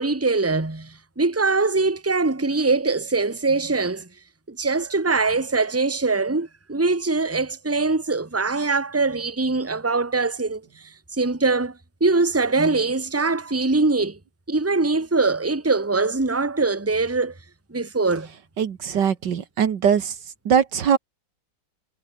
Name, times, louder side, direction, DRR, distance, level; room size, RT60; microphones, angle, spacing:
voice 1, 0.0-4.1 4.5-14.2 14.5-17.3 17.7-18.3, right 3 dB, 10° right, 1.7 m, -22 dB
voice 2, 18.6-20.1 20.5-21.0, right 8 dB, 70° right, 2.0 m, -21 dB
omnidirectional pair, 2.0 m